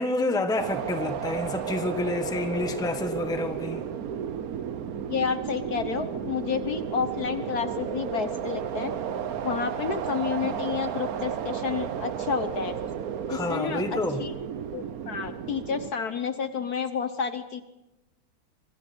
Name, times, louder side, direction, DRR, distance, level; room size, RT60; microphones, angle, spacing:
voice 1, 0.0-3.8 13.3-14.2, left 2 dB, ahead, 7 dB, 1.2 m, -29 dB
sound 1, 0.6-15.9, right 8 dB, 55° right, 1.2 m, -33 dB
voice 2, 5.1-8.9 9.4-12.7 13.3-14.4 14.7-17.6, left 6 dB, 55° left, 10 dB, 1.4 m, -30 dB
25.5 x 24.0 x 4.4 m, 0.96 s
omnidirectional pair, 2.2 m